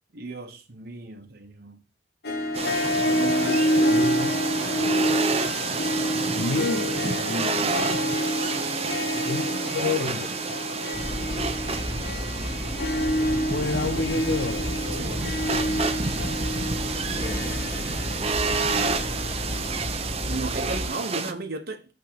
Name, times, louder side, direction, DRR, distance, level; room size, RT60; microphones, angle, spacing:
voice 1, 0.1-1.8 2.7-3.9 6.6-6.8 9.1-10.3 14.9-15.3 20.3-21.9, right 2 dB, 60° right, 1.1 m, -36 dB
Harp, 2.2-19.8, equal, 65° left, 1.4 m, -28 dB
sound 1, 2.5-21.3, right 4 dB, 35° right, 0.8 m, -30 dB
voice 2, 3.5-4.4 6.3-8.2 9.2-9.5 9.8-10.3 13.2-15.2, left 3 dB, 85° left, 0.6 m, -30 dB
sound 2, 10.9-20.9, left 1 dB, 40° left, 2.7 m, -33 dB
8.6 x 3.7 x 6.9 m
head